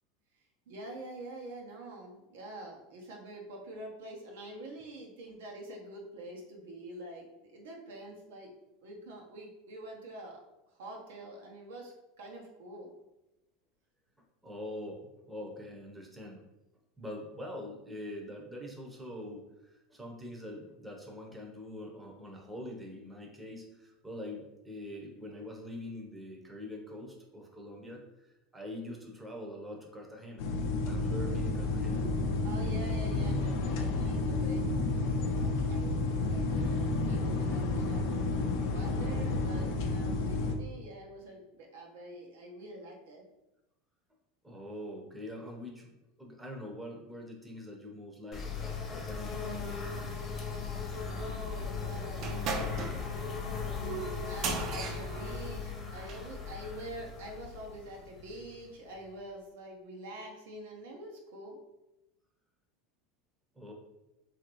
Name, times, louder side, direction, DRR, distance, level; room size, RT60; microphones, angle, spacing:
voice 1, 0.7-8.5 8.8-10.4 10.8-12.9 32.4-38.2 38.6-43.2 51.1-53.2 54.3-61.6, right 1 dB, 90° right, 0 dB, 0.8 m, -46 dB
voice 2, 14.4-16.4 17.0-30.5 30.9-32.1 44.4-49.4 63.5-63.7, left 1 dB, 10° right, 0 dB, 0.6 m, -44 dB
sound 1, 30.4-40.6, left 3 dB, 70° left, 0.4 m, -31 dB
sound 2, 48.3-58.9, left 5 dB, 30° left, 0.8 m, -38 dB
sound 3, 52.2-56.3, right 5 dB, 45° right, 0.4 m, -38 dB
2.9 x 2.5 x 2.9 m, 0.95 s
supercardioid pair, 130°, 0 cm